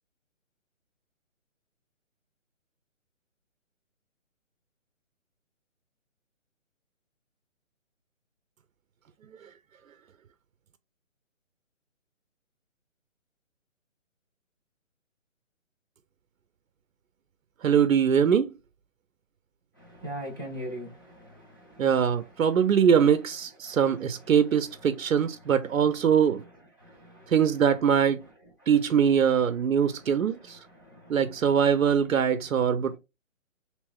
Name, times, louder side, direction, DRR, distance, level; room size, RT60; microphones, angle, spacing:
voice 1, 17.6-18.5 21.8-26.4 27.3-28.2 28.7-30.6 31.1-33.0, right 7 dB, 90° right, 0.6 m, -22 dB
voice 2, 19.8-22.9 23.6-24.3 25.0-26.5 26.8-27.6 28.6-28.7 29.8-31.6 32.8-33.0, equal, 15° left, 0.5 m, -44 dB
3.2 x 2.9 x 3.2 m
hypercardioid pair, 160°, 39 cm